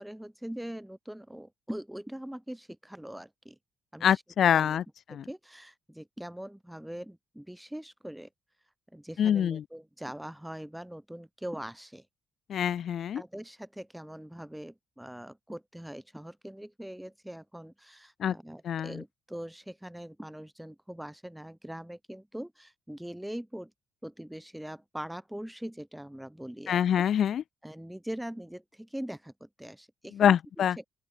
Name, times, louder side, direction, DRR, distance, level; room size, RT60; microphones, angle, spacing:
voice 1, 0.0-3.6 3.9-4.2 4.5-4.8 5.1-8.3 8.9-12.1 13.1-23.7 24.0-27.1 27.6-30.4 30.8-30.9, equal, 5° right, 4.4 m, -42 dB
voice 2, 4.0-4.8 5.1-5.2 9.2-9.6 12.5-13.2 18.2-18.3 18.7-18.9 26.7-27.4 30.2-30.8, left 9 dB, 65° left, 0.3 m, -25 dB
open air
cardioid pair, 90°, 0 cm